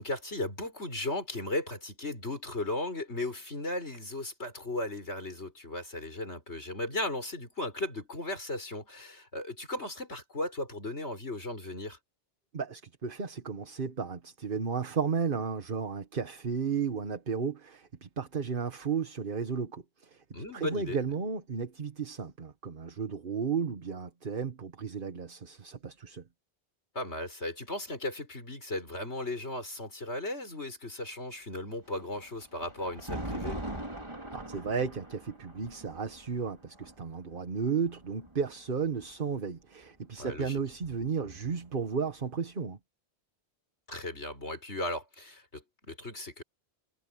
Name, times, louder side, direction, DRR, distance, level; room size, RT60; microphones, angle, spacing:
voice 1, 0.0-12.0 20.3-21.0 26.9-33.6 40.2-40.6 43.9-46.4, left 1 dB, 90° left, 6.4 m, -36 dB
voice 2, 12.5-20.2 20.5-26.2 34.3-42.8, right 6 dB, 55° right, 1.5 m, -33 dB
Thunder, 31.9-39.1 40.1-41.9, right 1 dB, 25° right, 3.3 m, -42 dB
omnidirectional pair, 1.1 m